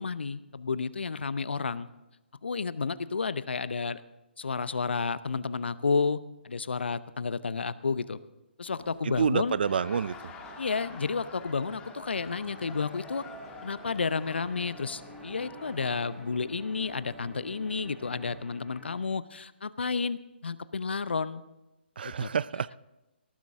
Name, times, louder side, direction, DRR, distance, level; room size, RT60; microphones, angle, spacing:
voice 1, 0.0-1.9 2.4-4.0 4.4-8.2 8.6-9.6 10.6-13.2 13.6-21.4 22.0-22.3, left 4 dB, 70° left, 16 dB, 0.7 m, -31 dB
sound 1, 8.8-18.4, right 4 dB, 40° right, 3.0 m, -52 dB
voice 2, 9.0-10.2 22.0-22.8, right 7 dB, 60° right, 20 dB, 0.5 m, -28 dB
Laughter, 9.5-16.3, left 4 dB, 15° left, 1.5 m, -48 dB
sound 2, 12.1-19.0, left 1 dB, 5° right, 2.5 m, -52 dB
18.5 x 13.5 x 3.7 m, 0.99 s
figure-of-eight pair, 140°, 6 cm